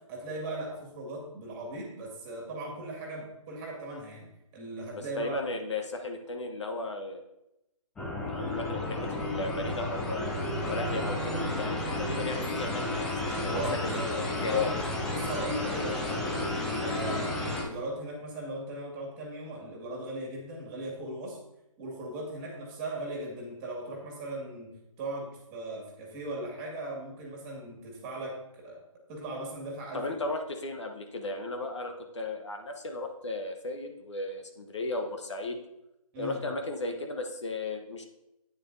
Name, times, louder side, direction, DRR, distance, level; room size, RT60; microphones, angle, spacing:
voice 1, 0.0-4.3 4.5-5.4 13.5-14.7 15.1-16.2 16.5-21.4 21.8-28.8 29.1-30.2 36.1-36.4, right 1 dB, 15° right, -1 dB, 2.2 m, -38 dB
voice 2, 4.9-7.2 8.3-10.3 10.7-14.7 29.9-35.6 36.2-38.1, left 3 dB, 55° left, 4 dB, 1.2 m, -35 dB
sound 1, 8.0-17.6, left 1 dB, 5° left, 0.4 m, -32 dB
10.0 x 9.3 x 2.7 m, 0.88 s
figure-of-eight pair, 150°, 18 cm